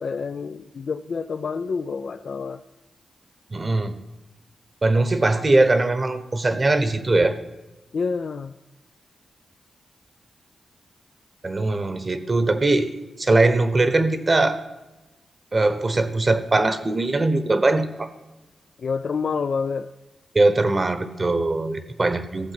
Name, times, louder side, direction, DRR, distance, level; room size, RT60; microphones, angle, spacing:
voice 1, 0.0-2.6 7.9-8.6 18.8-19.9, left 5 dB, 60° left, 9 dB, 0.4 m, -28 dB
voice 2, 3.5-3.9 4.8-7.3 11.4-12.9 13.2-14.6 15.5-18.1 20.3-22.5, right 2 dB, 35° right, 11 dB, 1.1 m, -21 dB
15.5 x 7.2 x 5.9 m, 1.1 s
cardioid pair, 65°, 0 cm